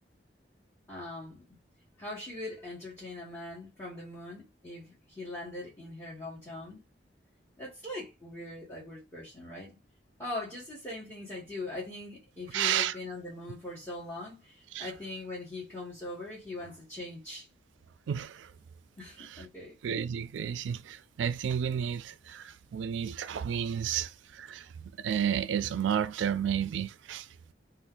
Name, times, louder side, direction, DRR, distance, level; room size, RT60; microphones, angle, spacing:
voice 1, 0.9-1.6 2.0-6.8 7.6-9.8 10.2-17.5 19.0-19.8 23.9-24.0, left 2 dB, 15° left, 1.2 m, -41 dB
voice 2, 12.5-12.9 14.7-14.9 18.1-18.5 19.2-19.3 19.8-24.7 25.0-27.3, right 8 dB, 85° right, 0.3 m, -31 dB
2.5 x 2.4 x 3.6 m
head